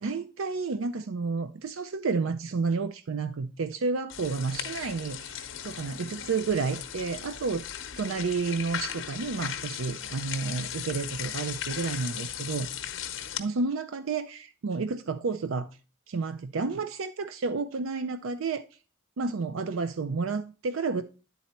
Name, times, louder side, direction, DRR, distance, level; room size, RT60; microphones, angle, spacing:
voice 1, 0.0-7.7 8.0-12.7 13.4-15.7 16.1-18.6 19.2-21.0, right 4 dB, 75° right, 0.5 m, -31 dB
sound 1, 4.1-13.4, left 9 dB, 60° left, 0.8 m, -37 dB
10.0 x 4.2 x 4.2 m
head